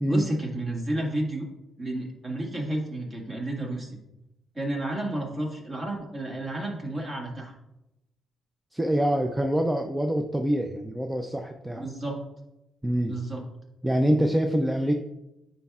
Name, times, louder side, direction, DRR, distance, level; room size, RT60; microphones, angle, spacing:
voice 1, 0.1-1.5 1.8-3.9 4.5-7.6 11.8-12.2 13.1-13.4, right 1 dB, 30° right, -1 dB, 1.8 m, -31 dB
voice 2, 8.7-11.9 12.8-13.1 13.8-14.9, equal, 10° right, 4 dB, 0.5 m, -25 dB
9.5 x 4.5 x 2.4 m, 0.91 s
cardioid pair, 90°, 0 cm